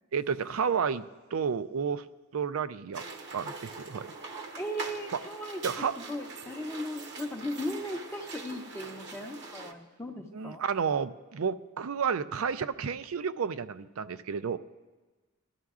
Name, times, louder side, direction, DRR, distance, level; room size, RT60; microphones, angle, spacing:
voice 1, 0.1-2.0 2.3-3.0 3.3-4.1 5.1-5.2 5.6-6.0 10.3-14.6, right 6 dB, 75° right, 13 dB, 0.4 m, -31 dB
sound 1, 2.9-9.7, right 3 dB, 55° right, 0.9 m, -42 dB
voice 2, 4.5-5.6 6.0-10.6, equal, 10° left, 3 dB, 0.6 m, -37 dB
20.5 x 12.5 x 2.4 m, 1.2 s
head